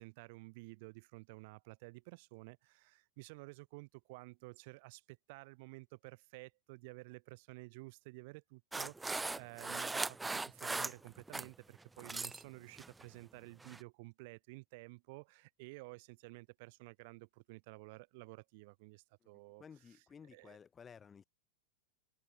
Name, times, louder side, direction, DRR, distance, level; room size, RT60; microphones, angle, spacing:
voice 1, 0.0-19.6 20.3-20.6, right 26 dB, 50° right, 3.7 m, -53 dB
sound 1, 8.7-11.5 11.8-12.4 12.8-13.0 13.6-13.8, right 3 dB, 10° right, 0.4 m, -39 dB
voice 2, 19.6-21.2, left 6 dB, 20° left, 3.0 m, -55 dB
figure-of-eight pair, 90°, 0 cm